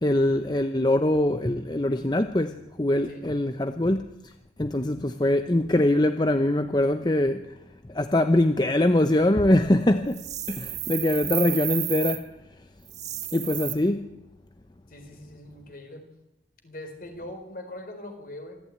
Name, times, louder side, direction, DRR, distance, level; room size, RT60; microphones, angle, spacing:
voice 1, 0.0-4.0 4.6-7.5 7.9-10.2 10.5-12.2 13.3-14.1, left 1 dB, 25° left, 0.7 m, -23 dB
sound 1, 10.1-12.2 12.9-13.7, right 12 dB, 40° right, 1.8 m, -32 dB
voice 2, 14.9-16.1 16.6-18.6, left 1 dB, 50° left, 4.3 m, -41 dB
26.0 x 14.0 x 9.3 m
head